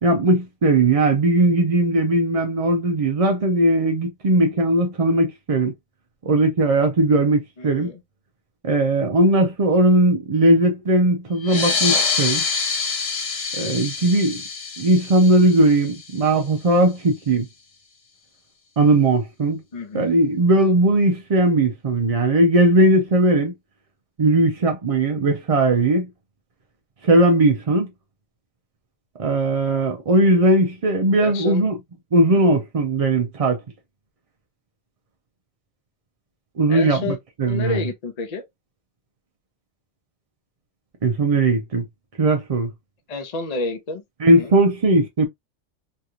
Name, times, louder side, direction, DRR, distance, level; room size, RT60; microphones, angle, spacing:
voice 1, 0.0-5.7 6.3-7.9 8.6-12.4 13.5-14.4 14.8-17.5 18.8-19.6 19.9-23.5 24.2-26.1 27.0-27.9 29.2-31.8 32.1-33.6 36.6-37.9 41.0-41.8 42.2-42.7 44.2-45.3, right 2 dB, 60° right, 0.3 m, -18 dB
voice 2, 7.6-8.0 19.7-20.1 31.2-31.7 36.7-37.2 37.5-38.4 43.1-44.5, left 3 dB, 35° left, 0.7 m, -30 dB
sound 1, 11.4-16.5, left 5 dB, 70° left, 1.3 m, -26 dB
3.2 x 2.8 x 2.3 m
omnidirectional pair, 1.4 m